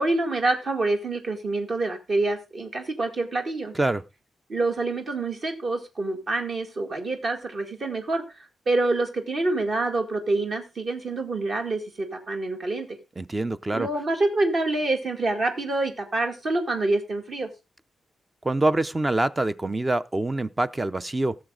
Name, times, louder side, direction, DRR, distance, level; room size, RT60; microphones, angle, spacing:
voice 1, 0.0-3.7 4.5-8.2 8.7-12.9 13.7-17.5, right 2 dB, 45° right, 1.9 m, -26 dB
voice 2, 13.2-13.9 18.4-21.4, right 2 dB, 15° right, 0.4 m, -25 dB
16.5 x 7.0 x 3.7 m
wide cardioid pair, 145°, 0 cm